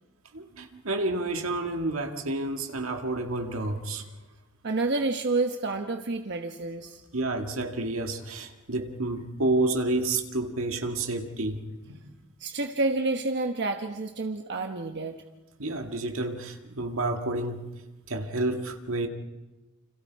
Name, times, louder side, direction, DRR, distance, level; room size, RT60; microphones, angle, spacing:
voice 1, 0.3-4.1 7.1-11.6 11.9-12.1 15.6-17.7 18.1-19.1, right 2 dB, 85° right, 2.0 m, -30 dB
voice 2, 4.6-7.0 12.4-15.1, right 3 dB, 55° right, 1.2 m, -29 dB
29.5 x 26.5 x 4.7 m
head